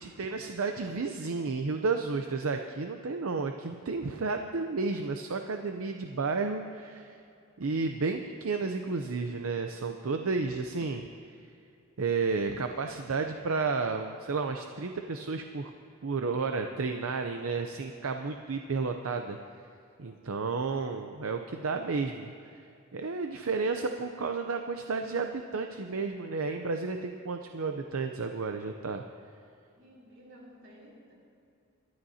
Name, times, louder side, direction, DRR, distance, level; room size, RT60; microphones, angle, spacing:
voice 1, 0.0-7.2 7.6-11.1 12.0-15.7 16.0-19.4 20.0-22.7 22.9-29.0, right 4 dB, 85° right, 5 dB, 0.6 m, -32 dB
voice 2, 29.7-31.1, equal, 60° right, -3 dB, 3.7 m, -54 dB
23.0 x 12.5 x 2.8 m, 2.6 s
head